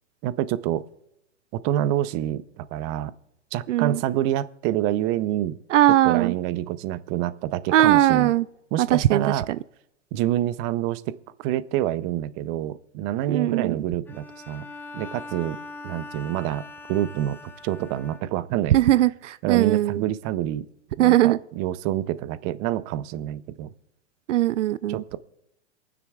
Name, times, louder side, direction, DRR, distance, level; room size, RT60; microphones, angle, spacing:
voice 1, 0.2-0.8 1.5-3.1 3.5-5.6 6.0-8.3 8.7-9.5 10.1-14.7 14.9-15.6 15.8-17.4 17.6-18.8 19.4-20.7 21.0-23.7 24.9-25.2, right 12 dB, 35° right, 16 dB, 0.6 m, -27 dB
voice 2, 3.7-4.0 5.7-6.3 7.7-8.5 8.8-9.2 13.3-13.7 18.7-20.0 21.0-21.4 24.3-25.0, right 13 dB, 85° right, 18 dB, 0.5 m, -19 dB
Bowed string instrument, 14.1-18.7, left 3 dB, 5° left, 0.5 m, -42 dB
27.5 x 9.5 x 2.3 m, 0.84 s
hypercardioid pair, 125°, 36 cm